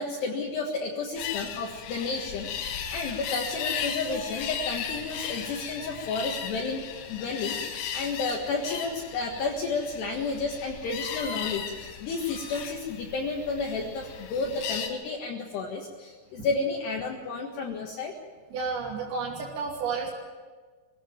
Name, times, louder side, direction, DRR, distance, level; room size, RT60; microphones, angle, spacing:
voice 1, 0.0-18.1, left 4 dB, 65° left, -1 dB, 3.4 m, -32 dB
sound 1, 1.2-14.9, left 7 dB, 90° left, 4.4 m, -36 dB
voice 2, 18.5-20.1, right 5 dB, 80° right, -2 dB, 5.2 m, -31 dB
22.0 x 16.5 x 9.2 m, 1.4 s
omnidirectional pair, 5.8 m